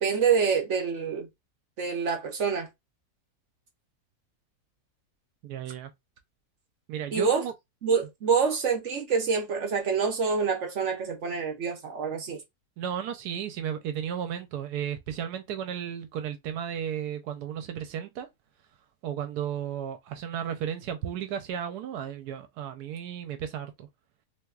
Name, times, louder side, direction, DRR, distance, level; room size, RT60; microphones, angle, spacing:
voice 1, 0.0-1.3 1.8-2.7 7.1-7.4 7.8-12.4, right 6 dB, 60° right, 0.9 m, -26 dB
voice 2, 5.4-5.9 6.9-7.5 12.8-18.3 19.0-23.9, right 9 dB, 85° right, 1.1 m, -34 dB
3.3 x 2.9 x 2.3 m
omnidirectional pair, 1.7 m